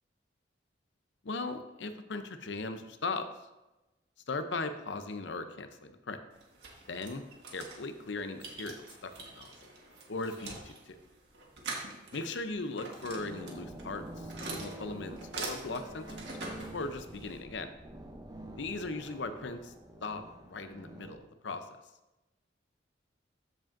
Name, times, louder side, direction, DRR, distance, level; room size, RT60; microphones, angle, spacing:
voice 1, 1.2-3.3 4.3-6.2 6.9-7.2 7.5-9.7 10.1-11.0 12.1-16.4 16.7-17.7 18.6-19.7 20.0-20.2 20.5-21.6, left 3 dB, 70° left, 9 dB, 0.6 m, -38 dB
sound 1, 6.3-17.4, right 3 dB, 65° right, 1.6 m, -45 dB
sound 2, 13.0-21.2, right 1 dB, 20° right, 0.7 m, -47 dB
14.5 x 5.0 x 2.6 m, 1.0 s
head